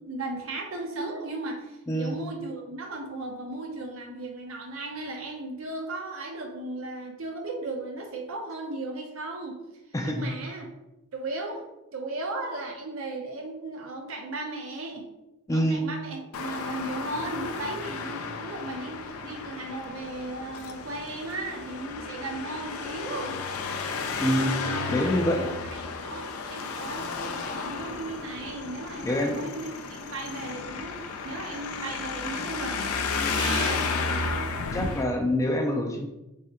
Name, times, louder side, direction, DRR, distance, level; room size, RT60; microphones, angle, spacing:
voice 1, 0.0-9.5 10.0-10.7 11.1-11.6 11.9-15.1 15.5-23.4 24.7-31.0 31.2-33.9, right 2 dB, 75° right, 2 dB, 0.7 m, -36 dB
voice 2, 9.9-10.3 15.5-15.8 24.2-24.6 24.9-25.5 29.0-29.4 34.7-36.1, equal, 15° left, 2 dB, 0.3 m, -26 dB
Traffic noise roadway noise, 16.3-35.0, left 4 dB, 85° left, 0.4 m, -33 dB
3.6 x 2.1 x 4.1 m, 0.97 s
head